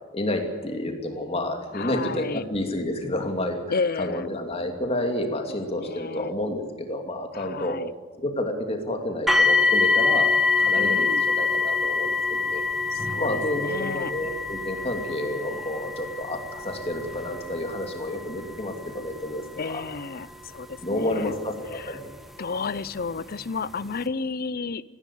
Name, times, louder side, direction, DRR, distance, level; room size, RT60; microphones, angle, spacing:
voice 1, 0.1-3.6 4.0-7.8 8.2-12.6 13.2-19.8 20.8-22.1, left 1 dB, 30° left, 4 dB, 2.7 m, -30 dB
voice 2, 1.7-2.5 3.7-4.3 5.3-6.4 7.3-7.9 10.7-11.2 12.9-14.1 19.6-21.4 21.7-22.0 22.4-24.8, left 4 dB, 45° left, 17 dB, 0.6 m, -32 dB
sound 1, 9.3-22.1 23.0-23.1 23.7-23.8, left 4 dB, ahead, 1.4 m, -26 dB
19.0 x 16.0 x 8.5 m, 1.5 s
head